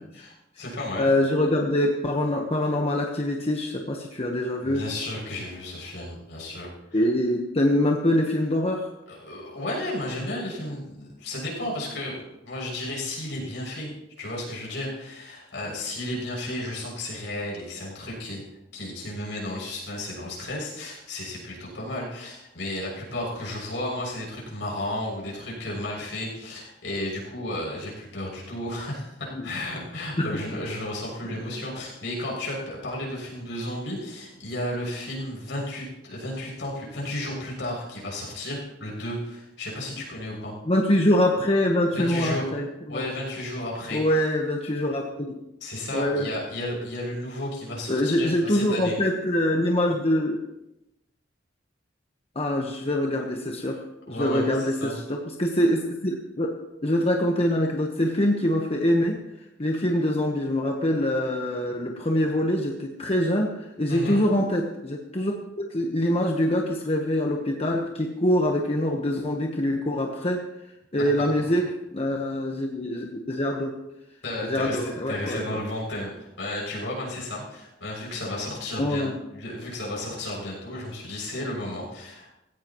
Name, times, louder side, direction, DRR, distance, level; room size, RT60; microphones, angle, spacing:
voice 1, 0.2-1.1 4.6-7.0 9.1-12.2 12.4-13.9 14.2-18.4 18.7-40.5 41.9-42.5 42.9-44.2 45.6-49.0 54.1-54.9 63.9-64.2 74.2-79.1 79.3-82.3, left 1 dB, 75° left, -3 dB, 6.8 m, -33 dB
voice 2, 1.0-4.9 6.9-8.9 29.3-29.5 30.2-30.4 31.2-31.4 40.7-43.1 43.9-45.4 45.9-46.3 47.9-50.4 52.3-56.6 56.8-59.2 59.6-65.3 65.7-70.4 70.9-71.7 71.9-73.7 74.4-75.6 78.8-79.2, left 1 dB, 35° left, 1 dB, 1.2 m, -24 dB
17.5 x 16.5 x 3.1 m, 0.90 s
head